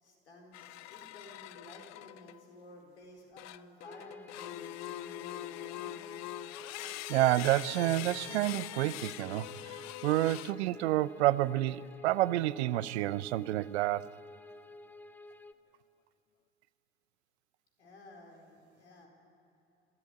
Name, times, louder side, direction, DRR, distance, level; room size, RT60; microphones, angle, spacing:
voice 1, 0.0-6.0 17.8-19.1, left 2 dB, 90° left, 4.6 m, -54 dB
sound 1, 0.5-2.5 3.4-10.8 11.6-11.9, left 17 dB, 55° left, 0.7 m, -44 dB
sound 2, 3.9-15.5, left 2 dB, 5° left, 1.0 m, -51 dB
voice 2, 7.1-14.2, right 15 dB, 80° right, 0.6 m, -29 dB
27.5 x 14.0 x 9.7 m
hypercardioid pair, 60°, 33 cm